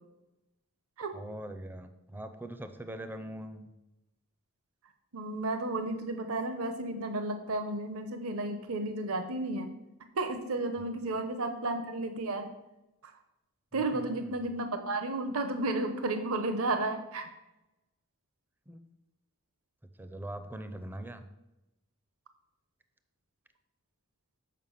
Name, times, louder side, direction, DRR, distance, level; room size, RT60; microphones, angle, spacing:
voice 1, 1.1-3.7 10.8-10.9 13.7-14.4 18.7-18.8 20.0-21.2, right 1 dB, 10° right, 9 dB, 0.5 m, -42 dB
voice 2, 5.1-9.7 10.1-12.5 13.0-13.1 13.7-17.3, right 2 dB, 70° right, 7 dB, 0.8 m, -33 dB
7.5 x 5.4 x 5.7 m, 0.96 s
head